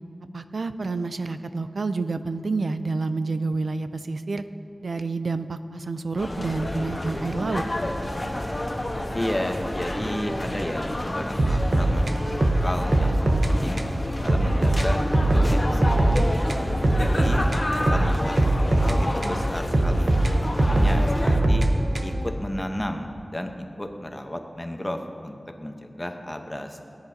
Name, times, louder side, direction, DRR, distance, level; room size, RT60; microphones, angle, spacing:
voice 1, 0.3-4.4 4.8-7.6, right 3 dB, 90° right, 11 dB, 0.4 m, -28 dB
sound 1, 6.2-21.4, left 1 dB, 35° left, 1.2 m, -30 dB
voice 2, 9.1-12.1 12.4-13.9 14.2-15.0 15.3-16.3 16.9-17.4 17.8-20.1 20.4-21.7 22.0-26.8, left 1 dB, 20° left, 4 dB, 0.9 m, -33 dB
sound 2, 11.4-13.5 13.8-13.9 14.3-16.2 16.5-19.4 19.7-22.3, right 1 dB, 65° right, 0.9 m, -21 dB
18.5 x 10.5 x 2.8 m, 2.5 s
wide cardioid pair, 75°, 0 cm